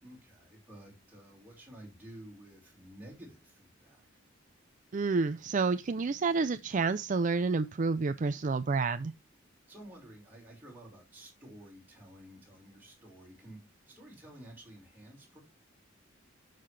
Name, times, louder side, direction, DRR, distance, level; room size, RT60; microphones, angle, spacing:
voice 1, 0.0-4.1 9.7-15.4, right 1 dB, 10° right, 5.2 m, -52 dB
voice 2, 4.9-9.1, right 4 dB, 40° right, 0.4 m, -29 dB
9.5 x 6.7 x 3.3 m
head